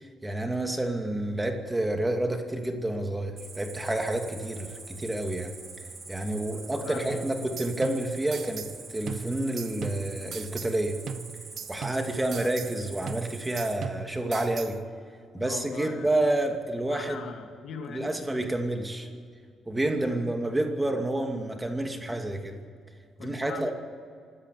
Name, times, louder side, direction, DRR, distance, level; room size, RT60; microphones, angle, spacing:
voice 1, 0.0-5.5 6.1-11.0 11.7-14.8 15.3-17.2 17.9-19.1 19.7-22.6 23.2-23.7, right 1 dB, 15° right, 4 dB, 2.6 m, -29 dB
Cricket, 3.4-13.7, right 4 dB, 40° right, 6.3 m, -45 dB
voice 2, 6.5-7.2 15.3-16.1 16.9-18.1 18.4-18.5 20.0-20.3 23.2-23.7, left 6 dB, 70° left, 4 dB, 2.6 m, -41 dB
sound 1, 7.1-8.8 9.1-10.8 11.1-12.8 13.1-14.8, right 7 dB, 60° right, 0.8 m, -39 dB
25.0 x 13.0 x 8.4 m, 2.1 s
cardioid pair, 90°, 0 cm